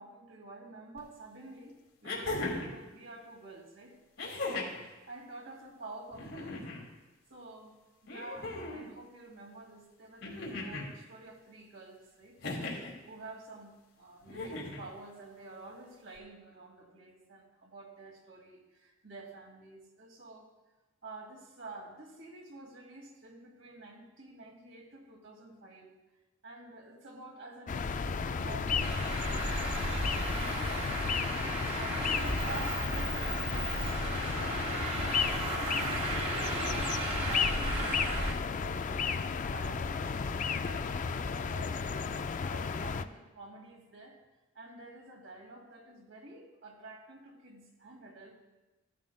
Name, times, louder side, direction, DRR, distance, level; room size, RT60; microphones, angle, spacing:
voice 1, 0.0-1.8 2.0-4.0 4.3-6.8 7.3-12.4 13.0-20.5 21.0-25.9 26.4-30.4 31.7-40.1 40.6-44.2 44.5-48.3, right 2 dB, 75° right, -1 dB, 2.3 m, -49 dB
sound 1, 1.0-1.1 2.0-2.8 4.2-4.8 6.1-6.8 8.1-8.9 10.2-10.9 12.4-12.9 14.3-14.8 16.2-16.3, left 2 dB, 85° left, 2.3 m, -37 dB
sound 2, 27.7-43.0, left 5 dB, 40° left, 0.3 m, -33 dB
Traffic noise roadway noise, 28.8-38.3, right 2 dB, 30° right, 1.1 m, -35 dB
14.5 x 11.0 x 2.3 m, 1.1 s
head